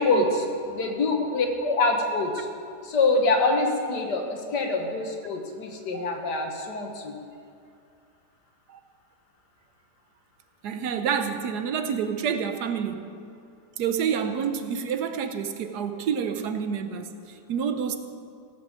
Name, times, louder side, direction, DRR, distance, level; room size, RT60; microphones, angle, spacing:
voice 1, 0.0-2.5 2.8-7.1, left 3 dB, 80° left, 3 dB, 2.0 m, -25 dB
voice 2, 10.6-13.1 13.8-18.0, right 7 dB, 75° right, 8 dB, 1.4 m, -28 dB
16.5 x 6.2 x 7.5 m, 2.4 s
omnidirectional pair, 1.8 m